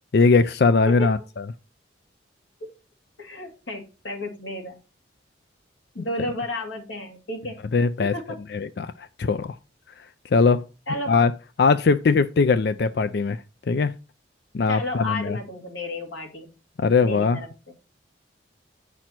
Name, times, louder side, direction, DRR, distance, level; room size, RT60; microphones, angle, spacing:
voice 1, 0.1-1.4 6.0-6.1 7.7-8.1 8.5-9.5 10.0-10.1 10.3-10.6 11.1-11.3 11.6-13.9 14.5-15.4 16.8-17.4, left 4 dB, 55° left, 0.4 m, -20 dB
voice 2, 3.2-4.8 5.9-7.6 8.0-8.4 10.9-11.1 14.7-16.5 17.0-17.7, left 1 dB, 75° left, 2.5 m, -32 dB
9.0 x 6.1 x 4.4 m
head